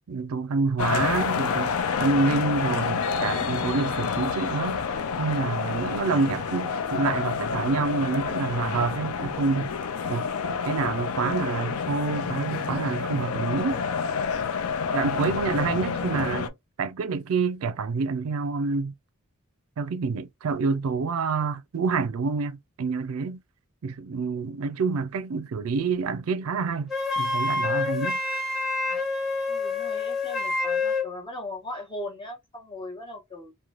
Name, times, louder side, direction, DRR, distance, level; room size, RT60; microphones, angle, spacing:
voice 1, 0.1-4.8 5.2-9.7 10.1-13.8 14.9-16.5 16.8-18.9 19.8-23.4 23.8-26.9 27.2-28.2, right 4 dB, 75° right, 0.4 m, -27 dB
sound 1, 0.8-16.5, left 6 dB, 90° left, 0.5 m, -28 dB
Wind instrument woodwind instrument, 26.9-31.1, left 3 dB, ahead, 1.2 m, -27 dB
voice 2, 29.5-33.6, left 1 dB, 25° left, 1.1 m, -38 dB
3.1 x 2.2 x 2.3 m
head